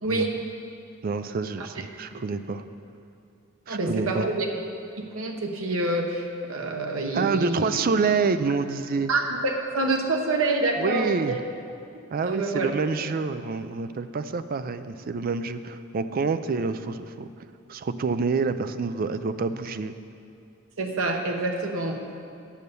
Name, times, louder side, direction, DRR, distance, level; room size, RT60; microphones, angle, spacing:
voice 1, 0.0-0.3 1.6-1.7 3.7-4.5 5.0-7.7 9.1-11.4 12.2-12.7 20.8-22.0, right 2 dB, 80° right, 2 dB, 1.1 m, -27 dB
voice 2, 1.0-2.6 3.7-4.3 7.1-9.1 10.8-11.4 12.1-17.3 17.7-19.9, right 4 dB, 45° right, 11 dB, 0.4 m, -27 dB
9.3 x 6.7 x 6.8 m, 2.5 s
head